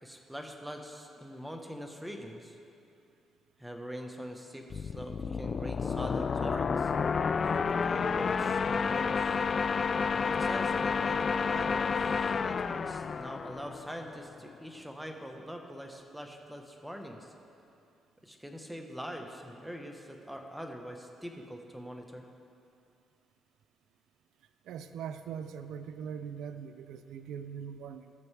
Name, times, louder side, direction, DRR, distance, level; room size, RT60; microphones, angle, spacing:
voice 1, 0.0-2.6 3.6-6.9 7.4-9.4 10.1-17.3 18.2-22.2, equal, 5° right, 3 dB, 1.1 m, -43 dB
sound 1, 4.7-14.2, left 5 dB, 45° left, 0.3 m, -30 dB
voice 2, 24.7-28.1, right 7 dB, 80° right, 10 dB, 0.4 m, -41 dB
18.5 x 6.9 x 3.4 m, 2.6 s
cardioid pair, 90°, 0 cm